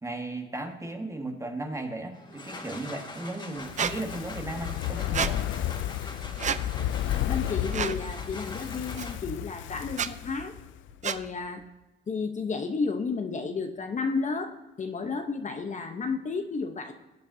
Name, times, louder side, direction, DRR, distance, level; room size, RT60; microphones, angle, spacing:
voice 1, 0.0-5.5, right 2 dB, 15° right, 3 dB, 1.7 m, -36 dB
sound 1, 2.1-9.5, left 2 dB, 20° left, 1.8 m, -43 dB
Fire, 3.6-10.9 11.2-11.3, left 12 dB, 75° left, 0.4 m, -33 dB
Squeak, 3.8-3.9 5.1-5.3 6.4-6.6 7.7-8.0 9.0-9.1 9.9-10.1 11.0-11.2, right 7 dB, 35° right, 0.5 m, -29 dB
voice 2, 7.3-10.5 11.0-11.6 12.1-16.9, left 4 dB, 40° left, 6 dB, 0.9 m, -32 dB
17.0 x 8.8 x 2.8 m, 1.1 s
cardioid pair, 90°, 20 cm